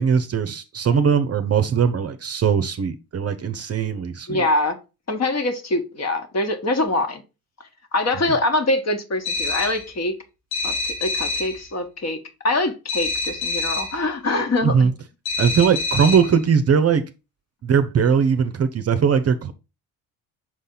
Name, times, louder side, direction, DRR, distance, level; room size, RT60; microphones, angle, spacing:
voice 1, 0.0-4.4 14.6-14.9 15.4-17.0 17.6-19.5, right 6 dB, 35° right, 0.7 m, -20 dB
voice 2, 4.3-4.8 5.1-7.2 7.9-10.2 10.6-10.7 11.0-12.2 12.4-14.9, left 2 dB, 35° left, 1.4 m, -23 dB
sound 1, 9.2-9.9 10.5-11.6 12.9-14.0 15.2-16.4, left 3 dB, 65° left, 3.1 m, -26 dB
6.3 x 4.1 x 3.8 m
hypercardioid pair, 65°, 43 cm